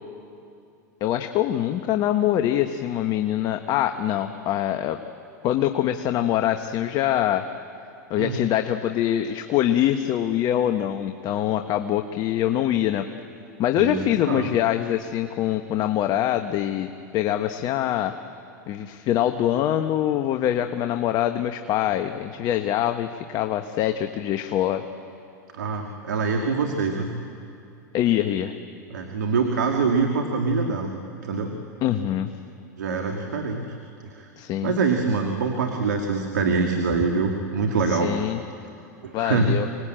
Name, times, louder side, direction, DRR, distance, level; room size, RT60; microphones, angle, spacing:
voice 1, 1.0-5.0 5.4-7.5 8.1-13.1 13.6-18.1 18.7-24.8 27.9-28.5 31.8-32.3 34.4-34.7 37.9-38.4 39.1-39.7, left 11 dB, 45° left, 7 dB, 1.1 m, -24 dB
voice 2, 25.5-27.1 28.9-30.9 31.2-31.5 32.8-33.8 34.0-34.3 34.6-38.1 39.0-39.6, right 4 dB, 90° right, 3 dB, 1.9 m, -24 dB
24.5 x 19.5 x 8.9 m, 2.6 s
hypercardioid pair, 105°, 9 cm